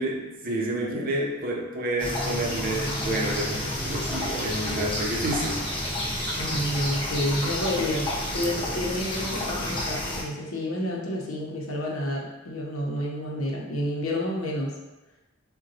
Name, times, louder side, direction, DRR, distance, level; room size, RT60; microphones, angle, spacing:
voice 1, 0.0-5.6, right 1 dB, 45° right, -1 dB, 0.5 m, -29 dB
sound 1, 2.0-10.2, left 1 dB, 25° left, 0.5 m, -30 dB
voice 2, 6.4-14.8, left 1 dB, 90° left, -2 dB, 0.7 m, -29 dB
3.9 x 2.2 x 2.6 m, 1.0 s
head